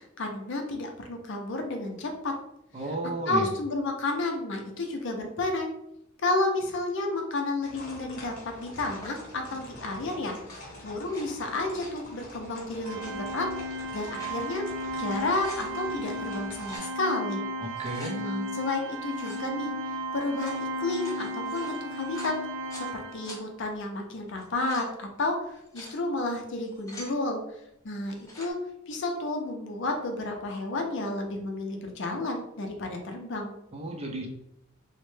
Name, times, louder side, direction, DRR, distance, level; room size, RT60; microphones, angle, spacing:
voice 1, 0.0-2.3 3.3-5.7 6.2-10.4 10.8-13.5 13.9-14.6 15.0-17.4 18.2-19.7 20.1-22.3 22.7-27.4 27.8-28.6 28.9-33.5, left 2 dB, 60° left, 3 dB, 0.5 m, -31 dB
voice 2, 2.7-3.5 17.6-18.2 33.7-34.3, right 1 dB, 30° right, 1 dB, 0.5 m, -33 dB
sound 1, 7.6-16.8, left 1 dB, 40° left, 0.9 m, -46 dB
sound 2, 9.0-9.3 10.3-11.2 11.6-12.0 12.8-13.1 13.8-14.4 14.8-14.9 15.2-15.7 16.5-16.9 17.6-18.2 19.1-19.5 20.2-22.9 23.2-23.4 24.3-24.9 25.5-26.0 26.5-27.2 28.0-28.5, left 1 dB, 15° left, 0.6 m, -46 dB
Organ, 12.8-23.6, equal, 90° right, 0.5 m, -35 dB
3.1 x 2.1 x 3.1 m, 0.79 s
head